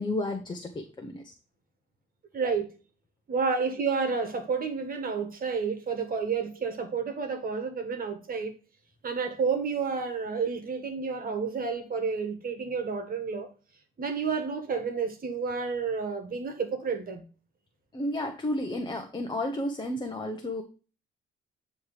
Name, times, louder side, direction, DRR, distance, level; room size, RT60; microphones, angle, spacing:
voice 1, 0.0-1.3 17.9-20.6, left 1 dB, 20° left, 1.0 m, -32 dB
voice 2, 2.3-2.7 3.3-8.5 9.0-13.5 14.0-17.2, right 5 dB, 45° right, 1.6 m, -30 dB
9.2 x 3.3 x 4.9 m
cardioid pair, 90°, 20 cm